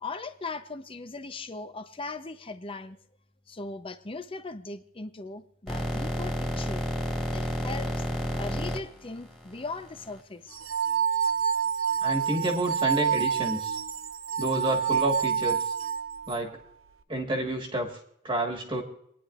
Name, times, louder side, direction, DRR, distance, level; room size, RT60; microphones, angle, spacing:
voice 1, 0.0-3.0 3.5-6.9 7.3-8.0 8.4-10.6, left 3 dB, 25° left, 10 dB, 0.7 m, -39 dB
sound 1, 5.7-10.2, equal, ahead, 2.1 m, -31 dB
sound 2, 10.5-16.4, right 7 dB, 70° right, 0.6 m, -27 dB
voice 2, 12.0-13.8 14.4-15.7 16.3-16.6 17.1-17.9 18.2-18.8, right 1 dB, 25° right, 0 dB, 1.6 m, -29 dB
29.0 x 10.0 x 2.5 m, 0.73 s
head